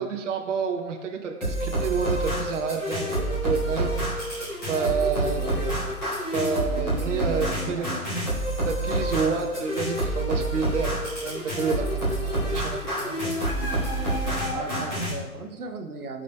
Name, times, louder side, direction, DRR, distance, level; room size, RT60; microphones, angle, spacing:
voice 1, 0.0-4.0 4.3-5.4 6.3-7.9 8.6-13.3, right 5 dB, 55° right, 3 dB, 0.8 m, -29 dB
sound 1, 1.4-15.1, right 1 dB, 5° left, 0.5 m, -28 dB
voice 2, 5.2-6.0 7.3-8.0 9.1-9.5 14.5-16.2, right 3 dB, 80° right, 4 dB, 1.0 m, -37 dB
12.5 x 5.1 x 2.2 m, 1.2 s
hypercardioid pair, 140°, 44 cm